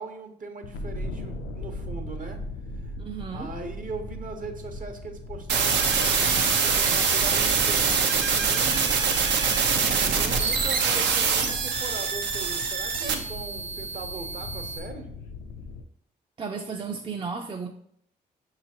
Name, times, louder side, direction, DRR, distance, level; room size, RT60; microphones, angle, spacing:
voice 1, 0.0-2.4 2.8-2.9 3.3-9.0 10.0-15.1, right 3 dB, 45° right, 5 dB, 0.9 m, -39 dB
sound 1, 0.6-15.9, left 2 dB, 85° left, 0.4 m, -39 dB
voice 2, 3.0-3.6 16.4-17.7, right 5 dB, 25° right, 2 dB, 0.5 m, -34 dB
sound 2, 5.5-14.8, right 5 dB, 70° right, 0.6 m, -24 dB
5.6 x 2.9 x 2.9 m, 0.67 s
supercardioid pair, 45°, 19 cm